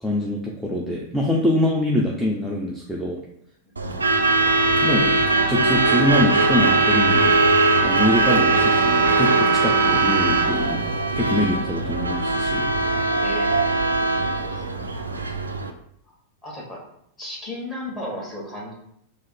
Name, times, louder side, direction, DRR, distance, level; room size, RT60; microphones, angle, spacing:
voice 1, 0.0-3.2 4.8-5.1 5.5-7.4 7.8-10.8 11.2-12.7, left 1 dB, ahead, -4 dB, 0.5 m, -24 dB
Truck / Alarm, 3.8-15.7, right 3 dB, 80° right, 0.3 m, -20 dB
voice 2, 13.2-13.9 14.2-14.9 16.4-16.8 17.2-18.7, left 1 dB, 20° left, -3 dB, 1.2 m, -35 dB
3.2 x 2.0 x 4.0 m, 0.73 s
figure-of-eight pair, 90°, 0 cm